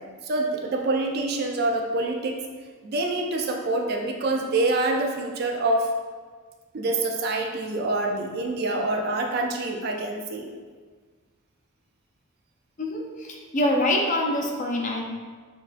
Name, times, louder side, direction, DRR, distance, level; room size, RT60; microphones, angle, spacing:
voice 1, 0.2-2.4 2.8-5.9 6.7-10.5, right 2 dB, 45° right, 2 dB, 0.4 m, -26 dB
voice 2, 12.8-15.0, left 1 dB, 35° left, 0 dB, 0.5 m, -25 dB
6.2 x 2.4 x 2.5 m, 1.5 s
head